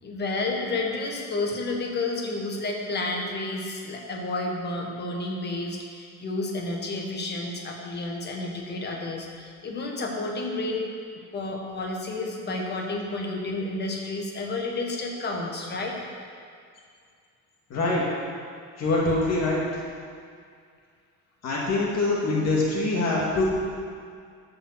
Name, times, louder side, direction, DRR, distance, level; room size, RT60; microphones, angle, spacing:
voice 1, 0.0-10.9 11.3-16.0, left 2 dB, 30° left, 0 dB, 1.6 m, -31 dB
voice 2, 17.7-18.1 18.8-19.8 21.4-23.4, left 2 dB, 55° left, -5 dB, 2.3 m, -24 dB
14.0 x 5.5 x 5.8 m, 2.2 s
cardioid pair, 145°, 32 cm